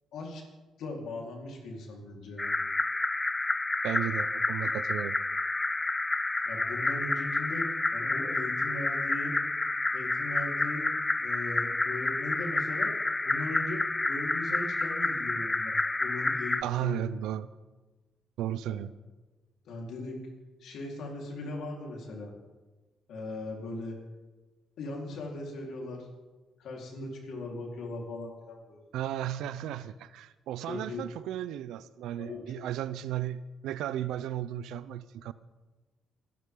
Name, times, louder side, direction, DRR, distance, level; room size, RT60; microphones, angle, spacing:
voice 1, 0.1-0.4 0.8-2.6 6.5-7.6 7.9-9.3 9.9-10.9 11.2-12.9 13.2-17.0 18.7-18.8 19.7-20.2 20.6-22.3 23.1-24.0 24.8-26.1 26.6-28.8 30.6-31.0 32.2-32.6, left 2 dB, 75° left, 4.3 m, -39 dB
sound 1, 2.4-16.6, left 2 dB, 20° left, 0.4 m, -29 dB
voice 2, 3.8-5.2 16.6-17.5 18.4-18.9 28.9-35.3, right 11 dB, 85° right, 0.6 m, -34 dB
27.5 x 12.0 x 3.9 m
cardioid pair, 90°, 0 cm